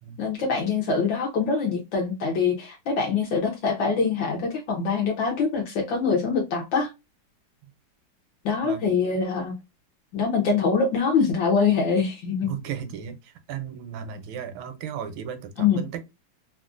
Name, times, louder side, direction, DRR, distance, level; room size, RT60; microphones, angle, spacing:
voice 1, 0.2-6.9 8.4-9.5 10.1-12.5 15.6-15.8, left 5 dB, 75° left, 1.4 m, -24 dB
voice 2, 12.4-16.0, right 8 dB, 80° right, 1.4 m, -35 dB
3.6 x 2.4 x 2.4 m
omnidirectional pair, 2.2 m